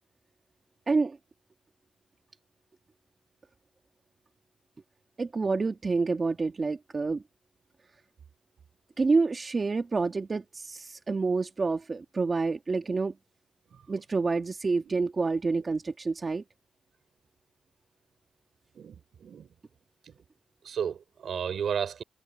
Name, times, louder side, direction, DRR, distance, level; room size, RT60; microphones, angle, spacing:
voice 1, 0.9-1.2 5.2-7.2 9.0-13.1 13.9-16.4, right 4 dB, 35° right, 1.8 m, -28 dB
voice 2, 18.7-19.5 20.0-20.1 20.6-22.0, right 7 dB, 65° right, 5.0 m, -34 dB
cardioid pair, 95°, 0 cm